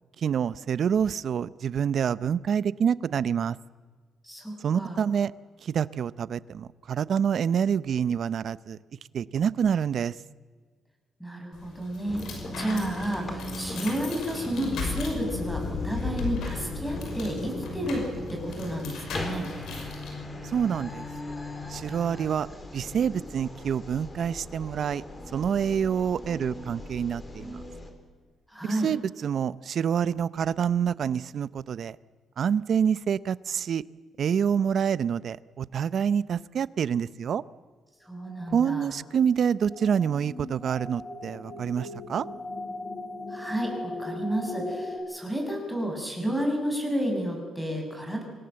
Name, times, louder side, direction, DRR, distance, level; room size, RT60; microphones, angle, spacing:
voice 1, 0.2-3.6 4.6-5.3 5.6-8.8 9.1-10.1 20.4-21.1 21.7-22.5 22.7-25.0 25.3-27.6 28.7-32.0 32.4-33.8 34.2-37.4 38.5-42.3, right 7 dB, 60° right, 18 dB, 0.7 m, -27 dB
voice 2, 4.2-5.0 11.2-12.3 12.6-19.5 28.5-28.9 38.0-38.9 43.3-48.2, right 1 dB, ahead, 2 dB, 6.9 m, -31 dB
sound 1, 11.5-20.1, left 5 dB, 75° left, 6.0 m, -37 dB
sound 2, 12.1-27.9, left 1 dB, 25° left, 4.0 m, -38 dB
sound 3, 38.2-45.0, left 2 dB, 50° left, 7.8 m, -38 dB
25.5 x 18.0 x 7.7 m, 1.5 s
cardioid pair, 90°, 0 cm